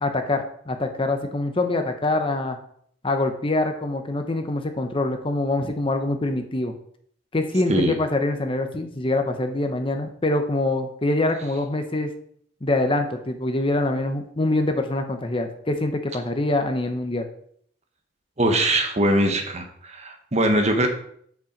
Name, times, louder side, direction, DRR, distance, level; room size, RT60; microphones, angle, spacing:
voice 1, 0.0-2.6 3.0-6.7 7.3-12.1 12.6-17.3, left 2 dB, 30° left, 6 dB, 0.8 m, -24 dB
voice 2, 18.4-20.9, right 1 dB, 35° right, 4 dB, 1.2 m, -21 dB
7.7 x 5.8 x 5.2 m, 0.64 s
head